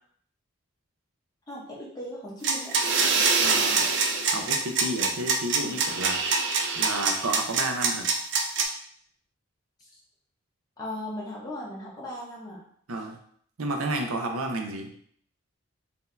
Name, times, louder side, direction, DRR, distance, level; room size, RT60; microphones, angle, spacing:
voice 1, 1.5-2.7 9.8-10.0 10.8-12.6, left 1 dB, 20° left, -5 dB, 1.1 m, -38 dB
sound 1, 2.4-8.6, right 4 dB, 55° right, 0.5 m, -24 dB
voice 2, 3.4-3.9 4.3-6.2 6.7-8.1 12.9-13.2 13.6-14.9, right 2 dB, 90° right, 3 dB, 0.7 m, -31 dB
4.4 x 2.8 x 3.4 m, 0.62 s
head